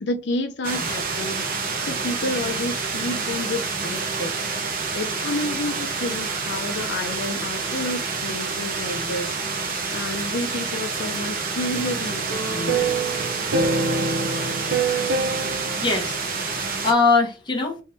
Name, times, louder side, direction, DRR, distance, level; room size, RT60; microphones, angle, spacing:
voice 1, 0.0-4.3 4.9-13.0, left 1 dB, 70° left, 0.6 m, -30 dB
sound 1, 0.6-16.9, right 4 dB, 50° right, 0.8 m, -28 dB
sound 2, 11.7-16.2, right 3 dB, 80° right, 0.7 m, -26 dB
voice 2, 15.2-17.8, left 4 dB, 25° left, 1.2 m, -23 dB
3.5 x 3.0 x 4.1 m
head